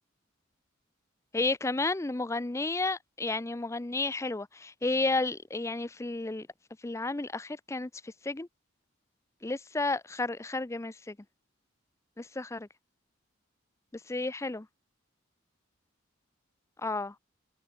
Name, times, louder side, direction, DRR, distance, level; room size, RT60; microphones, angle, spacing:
voice 1, 1.3-6.5 6.8-7.9 8.3-8.5 9.4-11.1 12.2-12.7 14.1-14.6 16.8-17.1, left 2 dB, 15° left, 0.5 m, -32 dB
head